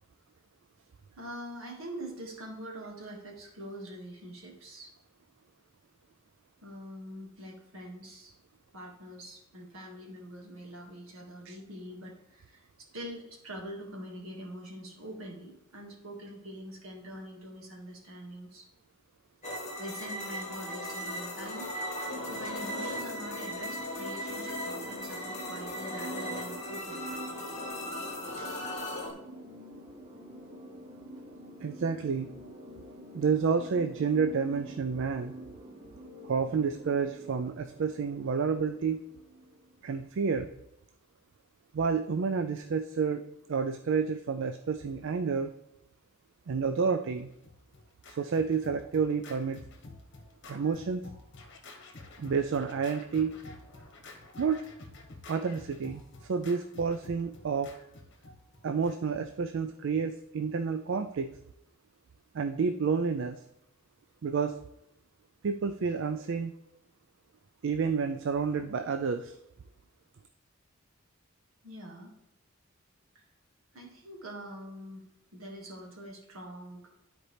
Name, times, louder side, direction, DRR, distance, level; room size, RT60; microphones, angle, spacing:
voice 1, 1.1-4.9 6.6-8.3 8.7-18.7 19.8-21.7 22.2-27.2 71.6-72.1 73.2-73.3 73.7-75.0 75.3-76.9, equal, 80° right, 0 dB, 1.9 m, -44 dB
sound 1, 19.4-29.1, left 1 dB, 35° left, 1.6 m, -37 dB
sound 2, 22.1-39.9, right 1 dB, 25° right, 0.7 m, -47 dB
voice 2, 28.2-28.9 31.6-32.3 33.1-35.3 36.2-39.0 39.8-40.5 41.7-43.2 43.5-45.5 46.5-47.3 48.1-49.6 50.5-51.0 52.2-53.4 54.4-54.7 55.3-57.7 58.6-61.3 62.3-63.4 64.2-64.6 65.4-66.5 67.6-69.3, right 5 dB, 60° right, 8 dB, 0.4 m, -30 dB
Scratching (performance technique), 47.1-59.2, left 2 dB, 60° left, 1.1 m, -50 dB
12.0 x 4.4 x 3.3 m, 0.82 s
head